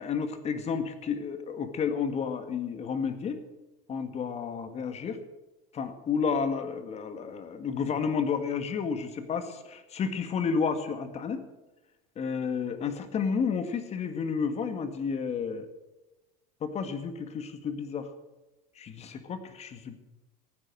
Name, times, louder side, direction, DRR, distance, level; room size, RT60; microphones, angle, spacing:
voice 1, 0.0-3.4 3.9-5.2 5.7-11.4 12.2-15.7 16.6-18.1 18.8-20.0, left 6 dB, 35° left, 9 dB, 1.9 m, -31 dB
15.0 x 9.2 x 7.5 m, 1.1 s
supercardioid pair, 115°, 19 cm